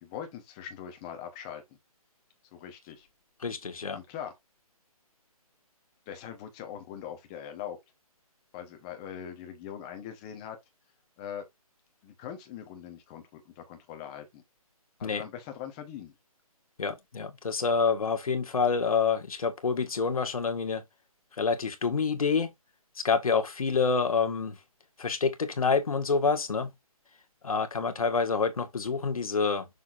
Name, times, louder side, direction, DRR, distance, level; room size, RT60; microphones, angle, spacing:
voice 1, 0.0-1.8 2.5-3.1 3.9-4.3 6.1-7.8 8.5-10.6 11.2-11.4 12.0-14.4 15.0-16.1, left 9 dB, 10° left, 1.1 m, -41 dB
voice 2, 3.4-4.0 15.0-15.2 16.8-20.8 21.4-22.5 23.0-24.6 25.0-26.7 27.4-29.7, left 5 dB, 65° left, 1.8 m, -27 dB
7.0 x 6.1 x 2.6 m
hypercardioid pair, 175°, 19 cm